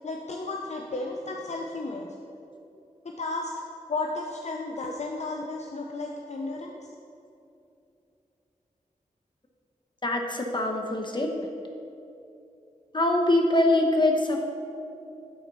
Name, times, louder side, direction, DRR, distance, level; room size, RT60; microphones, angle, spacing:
voice 1, 0.0-2.1 3.0-3.5 3.9-6.8, left 2 dB, 55° left, 1 dB, 0.6 m, -33 dB
voice 2, 10.0-11.3 12.9-14.4, left 1 dB, 35° left, 2 dB, 1.0 m, -23 dB
8.8 x 4.3 x 5.3 m, 2.7 s
wide cardioid pair, 70°, 14 cm